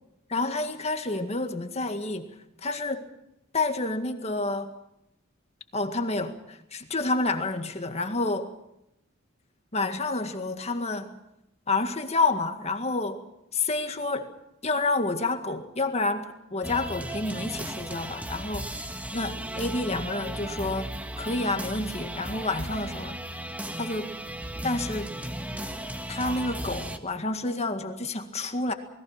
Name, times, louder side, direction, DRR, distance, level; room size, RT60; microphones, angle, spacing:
voice 1, 0.3-2.3 2.6-3.1 3.5-4.7 5.7-6.4 6.7-8.5 9.7-11.1 11.7-13.2 13.5-14.3 14.6-18.7 19.1-23.2 23.8-24.1 24.6-25.1 26.1-28.7, left 3 dB, 35° left, 6 dB, 1.9 m, -29 dB
sound 1, 16.6-27.0, right 1 dB, 5° right, 1.5 m, -35 dB
28.0 x 21.0 x 5.8 m, 0.85 s
head